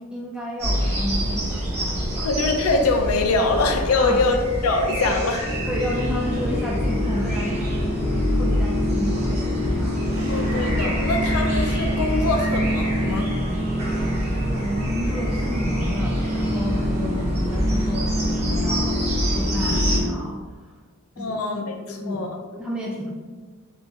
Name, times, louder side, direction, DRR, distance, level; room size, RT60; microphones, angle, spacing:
voice 1, 0.0-2.3 4.0-4.2 5.7-10.0 14.5-20.8 21.2-21.4 21.9-22.3 22.5-23.1, equal, 5° right, -4 dB, 0.3 m, -31 dB
sound 1, 0.6-20.0, equal, 30° right, 0.8 m, -26 dB
voice 2, 2.2-5.5 10.2-13.3 21.2-22.4, left 3 dB, 75° left, 4 dB, 0.4 m, -23 dB
sound 2, 5.4-20.1, left 1 dB, 10° left, 0.9 m, -27 dB
sound 3, 10.1-17.9, equal, 70° right, 1.2 m, -43 dB
3.5 x 2.6 x 2.9 m, 1.3 s
head